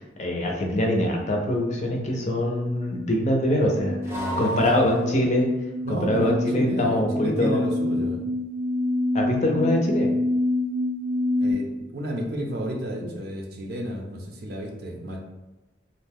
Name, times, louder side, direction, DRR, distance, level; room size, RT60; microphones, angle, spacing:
voice 1, 0.0-5.5 5.9-7.6 9.1-10.1, left 1 dB, 40° left, 1 dB, 0.5 m, -24 dB
sound 1, 0.8-1.8 4.0-5.5, equal, 15° right, 0.6 m, -35 dB
sound 2, 2.3-11.5, left 1 dB, 85° left, 0.6 m, -28 dB
voice 2, 4.1-4.9 5.8-8.3 11.4-15.2, equal, 60° right, 1 dB, 0.5 m, -32 dB
2.6 x 2.1 x 3.4 m, 1.0 s
head